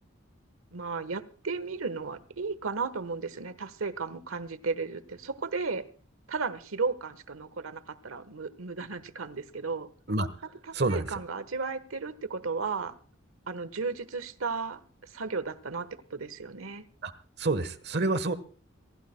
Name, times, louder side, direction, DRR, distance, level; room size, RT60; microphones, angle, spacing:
voice 1, 0.7-5.8 6.3-9.9 10.7-12.9 13.5-14.8 15.1-16.8, right 4 dB, 85° right, 14 dB, 1.2 m, -34 dB
voice 2, 10.7-11.1 17.0-17.1 17.4-18.3, right 2 dB, 50° right, 14 dB, 1.2 m, -27 dB
26.0 x 16.5 x 2.2 m, 0.41 s
head